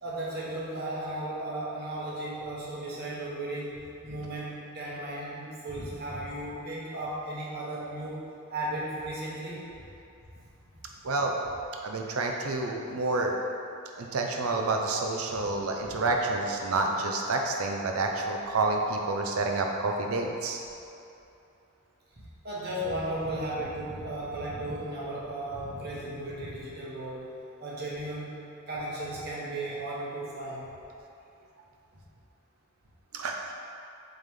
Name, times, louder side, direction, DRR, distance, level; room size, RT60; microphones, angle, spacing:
voice 1, 0.0-8.2 8.5-9.7 15.3-15.4 22.4-30.7, right 1 dB, 50° right, -6 dB, 1.3 m, -35 dB
voice 2, 11.0-11.3 11.8-13.4 14.0-20.6 33.1-33.5, right 3 dB, 90° right, 2 dB, 0.7 m, -29 dB
7.5 x 3.5 x 3.7 m, 2.7 s
head